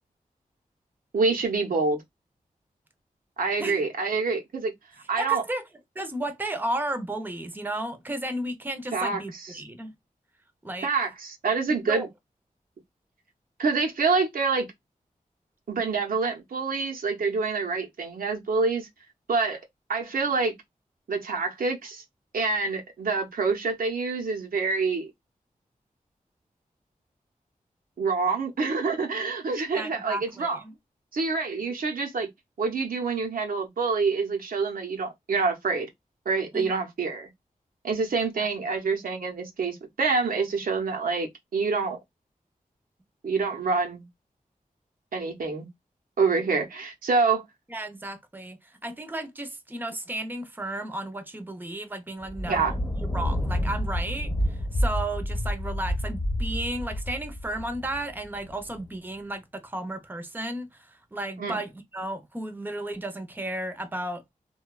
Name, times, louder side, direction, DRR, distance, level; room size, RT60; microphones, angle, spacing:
voice 1, 1.1-2.0 3.4-4.7 5.1-5.4 8.9-9.2 9.5-9.6 10.8-12.1 13.6-14.7 15.7-18.9 19.3-19.6 19.9-20.5 21.1-22.0 22.3-25.1 28.0-30.6 31.1-32.3 32.6-35.9 36.3-37.3 37.8-42.0 43.2-44.1 45.1-45.7 46.2-47.4 52.5-52.8 61.4-61.6, right 4 dB, 80° right, 0.7 m, -26 dB
voice 2, 5.2-5.6 6.0-9.9 10.6-10.9 11.6-12.1 29.7-30.7 36.5-36.7 38.4-38.8 47.7-64.2, right 1 dB, 15° right, 0.6 m, -34 dB
Thunder, 52.2-58.9, equal, 25° left, 1.0 m, -29 dB
2.7 x 2.2 x 2.2 m
cardioid pair, 50°, 15 cm